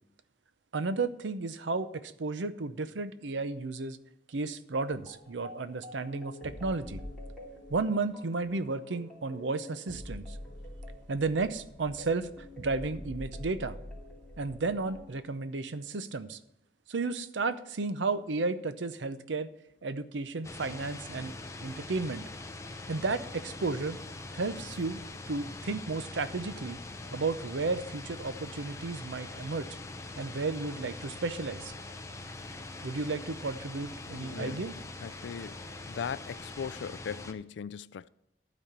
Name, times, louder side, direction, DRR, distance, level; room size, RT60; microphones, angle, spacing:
voice 1, 0.7-4.0 4.3-7.0 7.7-10.4 11.1-12.3 12.6-13.8 14.4-16.4 16.9-19.5 19.8-21.3 21.6-22.2 22.9-24.0 24.3-25.0 25.3-26.8 27.1-29.7 30.2-31.7 32.8-34.7, right 3 dB, 85° right, 0.7 m, -33 dB
sound 1, 4.9-15.1, equal, 5° right, 2.6 m, -46 dB
sound 2, 20.4-37.3, left 2 dB, 15° left, 0.6 m, -43 dB
voice 2, 34.1-34.7 35.0-35.6 35.9-38.1, left 7 dB, 80° left, 0.4 m, -39 dB
12.0 x 4.2 x 8.0 m
head